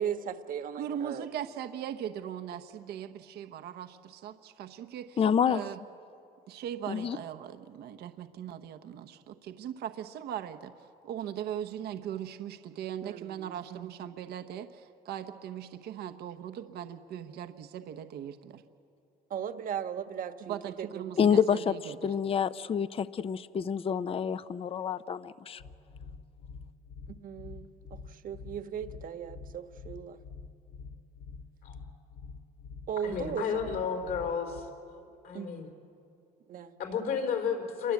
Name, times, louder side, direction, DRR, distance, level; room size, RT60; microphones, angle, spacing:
voice 1, 0.0-1.3 13.0-13.5 19.3-21.3 27.1-27.7 28.1-30.2 32.9-33.7 35.3-35.6 36.5-36.7, right 8 dB, 55° right, 9 dB, 1.4 m, -37 dB
voice 2, 0.7-5.2 5.5-5.8 6.5-10.7 11.0-18.6 20.4-22.1, right 10 dB, 75° right, 8 dB, 1.1 m, -39 dB
voice 3, 5.2-5.7 6.9-7.2 21.2-25.6, left 7 dB, 35° left, 14 dB, 0.6 m, -28 dB
sound 1, 25.6-34.6, left 5 dB, 85° left, 2.2 m, -46 dB
voice 4, 33.0-34.7 35.2-35.7 36.8-37.9, left 6 dB, 65° left, 4 dB, 4.8 m, -32 dB
28.5 x 23.5 x 8.5 m, 2.6 s
cardioid pair, 110°, 17 cm